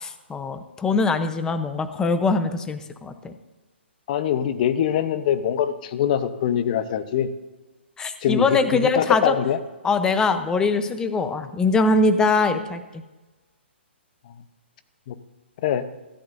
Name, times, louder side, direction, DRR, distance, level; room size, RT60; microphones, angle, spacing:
voice 1, 0.0-3.3 8.0-9.3 9.8-12.8, left 3 dB, 10° left, 10 dB, 0.8 m, -22 dB
voice 2, 4.1-7.3 8.2-9.6 15.1-15.2 15.6-15.8, left 9 dB, 45° left, 12 dB, 0.9 m, -23 dB
17.0 x 14.5 x 2.7 m, 1.2 s
hypercardioid pair, 140°, 6 cm